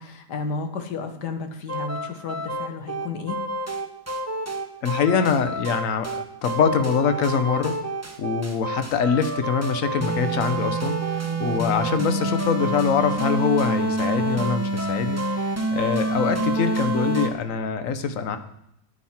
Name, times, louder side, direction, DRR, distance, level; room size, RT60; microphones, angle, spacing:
voice 1, 0.0-3.4 11.2-11.4, left 4 dB, 80° left, 7 dB, 1.7 m, -32 dB
sound 1, 1.7-17.3, right 2 dB, 15° right, 0.5 m, -27 dB
voice 2, 4.8-7.8 8.2-18.4, left 6 dB, 60° left, 10 dB, 1.1 m, -24 dB
9.4 x 9.3 x 4.3 m, 0.78 s
omnidirectional pair, 1.8 m